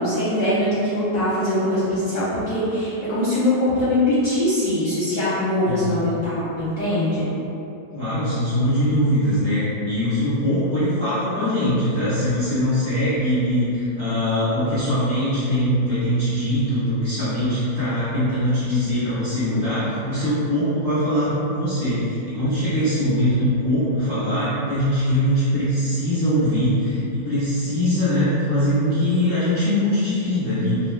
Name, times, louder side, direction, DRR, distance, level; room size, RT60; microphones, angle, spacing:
voice 1, 0.0-7.3, left 1 dB, 55° left, -11 dB, 0.9 m, -22 dB
voice 2, 7.9-30.8, equal, 20° left, -15 dB, 0.9 m, -22 dB
2.7 x 2.3 x 3.2 m, 2.8 s
omnidirectional pair, 1.8 m